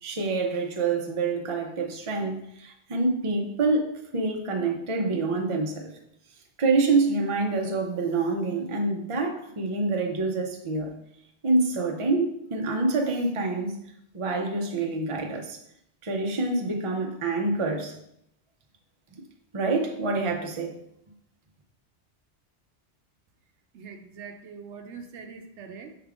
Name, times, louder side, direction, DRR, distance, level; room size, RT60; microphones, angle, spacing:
voice 1, 0.0-5.9 6.6-10.9 11.4-13.8 14.1-15.6 16.0-18.0 19.5-20.8, right 3 dB, 35° right, 2 dB, 0.7 m, -26 dB
voice 2, 23.7-26.0, right 5 dB, 85° right, 6 dB, 0.9 m, -43 dB
5.7 x 3.5 x 4.9 m, 0.74 s
omnidirectional pair, 1.2 m